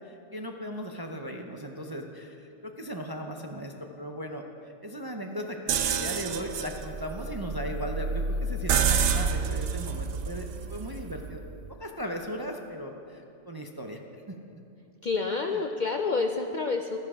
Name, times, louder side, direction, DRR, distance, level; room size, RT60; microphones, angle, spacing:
voice 1, 0.1-2.4 2.6-4.4 4.8-11.4 11.8-14.0, equal, 25° right, 2 dB, 0.5 m, -37 dB
sound 1, 5.7-11.5, right 6 dB, 75° right, 1.0 m, -29 dB
voice 2, 15.0-17.0, left 4 dB, 55° left, 4 dB, 0.5 m, -28 dB
13.5 x 10.5 x 4.9 m, 2.7 s
omnidirectional pair, 1.3 m